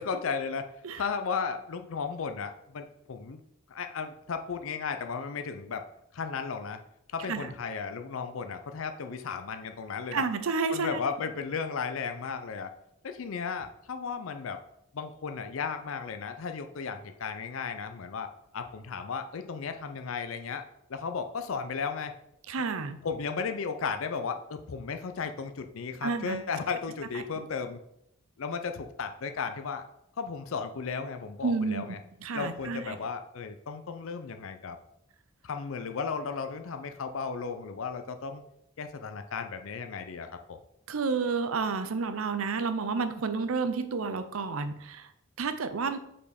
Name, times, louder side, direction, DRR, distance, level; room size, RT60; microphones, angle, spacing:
voice 1, 0.0-3.4 3.7-5.9 6.1-6.8 7.1-10.2 10.7-12.7 13.0-14.6 14.9-20.6 20.9-22.1 23.0-27.8 28.4-29.8 30.2-32.0 32.3-34.8 35.4-38.4 38.8-40.6, left 5 dB, 65° left, 8 dB, 0.5 m, -35 dB
voice 2, 10.1-11.0 22.5-23.0 26.0-26.4 27.1-27.2 31.4-31.8 32.2-33.0 40.9-45.1 45.4-46.0, right 4 dB, 70° right, 11 dB, 0.6 m, -30 dB
5.4 x 4.3 x 5.0 m, 0.76 s
head